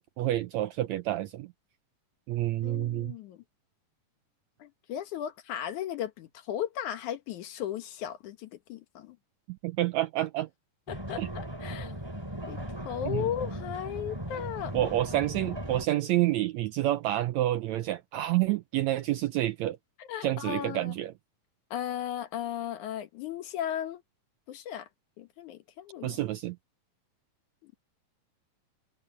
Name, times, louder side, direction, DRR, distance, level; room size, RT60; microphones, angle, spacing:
voice 1, 0.0-1.5 2.3-3.1 9.5-10.5 11.2-11.3 13.1-13.2 14.7-19.8 20.2-21.1 26.0-26.6, right 14 dB, 75° right, 1.7 m, -28 dB
voice 2, 2.6-3.4 4.6-9.2 10.9-12.0 12.5-14.9 20.0-20.9 21.7-24.0 24.5-24.9 25.2-26.2 27.6-27.7, left 10 dB, 70° left, 2.5 m, -36 dB
sound 1, 10.9-15.9, equal, 10° right, 3.1 m, -38 dB
omnidirectional pair, 3.8 m